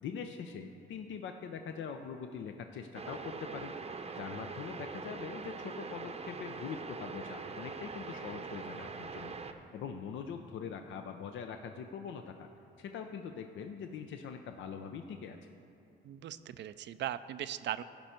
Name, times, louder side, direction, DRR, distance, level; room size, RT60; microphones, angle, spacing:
voice 1, 0.0-12.5 12.8-15.5, left 6 dB, 70° left, 6 dB, 0.6 m, -43 dB
sound 1, 2.9-9.5, right 4 dB, 30° right, 0.7 m, -43 dB
voice 2, 16.0-17.8, right 12 dB, 65° right, 13 dB, 0.4 m, -39 dB
16.0 x 5.4 x 4.4 m, 2.7 s
cardioid pair, 90°, 20 cm